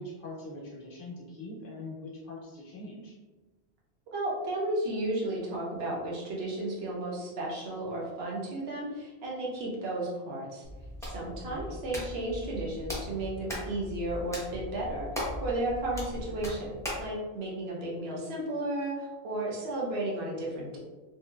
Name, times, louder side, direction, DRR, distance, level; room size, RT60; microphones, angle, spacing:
voice 1, 0.0-3.2 11.5-11.8, left 1 dB, 60° left, -3 dB, 0.8 m, -42 dB
voice 2, 4.1-10.6 11.0-15.1 15.4-20.8, right 1 dB, 70° right, -3 dB, 1.0 m, -33 dB
Hands, 10.6-17.1, left 1 dB, 5° left, 0.6 m, -39 dB
3.0 x 2.6 x 2.2 m, 1.2 s
omnidirectional pair, 1.1 m